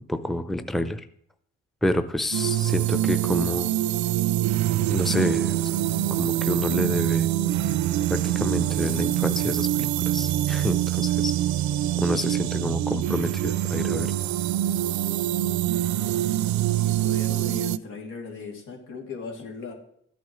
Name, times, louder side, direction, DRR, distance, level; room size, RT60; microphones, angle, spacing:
voice 1, 0.1-1.0 1.8-3.7 4.9-5.6 6.2-7.3 8.1-11.3 12.0-14.1, left 1 dB, ahead, 10 dB, 0.6 m, -28 dB
sound 1, 2.3-17.8, right 13 dB, 70° right, 0.5 m, -25 dB
voice 2, 16.7-19.7, left 4 dB, 85° left, -1 dB, 2.8 m, -38 dB
14.0 x 8.3 x 3.1 m, 0.68 s
cardioid pair, 90°, 30 cm